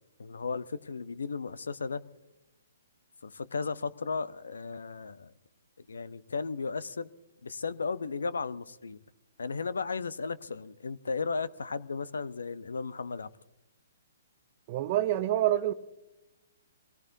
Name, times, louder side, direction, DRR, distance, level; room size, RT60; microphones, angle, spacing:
voice 1, 0.2-2.0 3.2-5.3 5.9-7.1 7.4-9.0 9.4-13.3, left 4 dB, 75° left, 0.8 m, -35 dB
voice 2, 14.7-15.7, right 13 dB, 40° right, 0.6 m, -27 dB
25.0 x 18.0 x 2.7 m
figure-of-eight pair, 130°, 0 cm